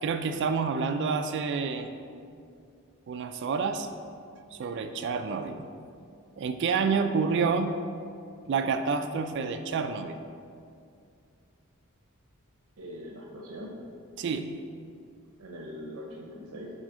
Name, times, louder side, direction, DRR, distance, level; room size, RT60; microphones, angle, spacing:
voice 1, 0.0-1.9 3.1-3.9 4.5-5.7 6.4-7.7 8.5-10.2 14.2-14.5, right 5 dB, 55° right, 6 dB, 0.3 m, -28 dB
voice 2, 12.8-13.8 15.4-16.7, equal, 85° right, -1 dB, 0.7 m, -41 dB
6.3 x 4.1 x 4.9 m, 2.4 s
head